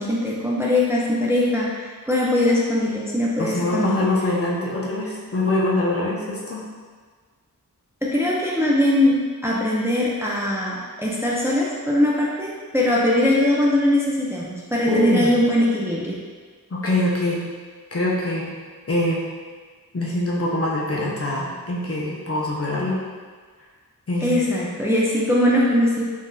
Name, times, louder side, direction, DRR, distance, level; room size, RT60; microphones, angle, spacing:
voice 1, 0.0-4.1 8.0-16.2 24.2-26.0, left 1 dB, 5° right, -5 dB, 0.5 m, -21 dB
voice 2, 3.4-6.7 14.9-15.3 16.7-17.4 17.9-18.5 18.9-19.2 19.9-23.0 24.1-24.4, left 1 dB, 40° left, -4 dB, 0.6 m, -24 dB
3.5 x 2.6 x 2.2 m, 1.5 s
wide cardioid pair, 50°, 36 cm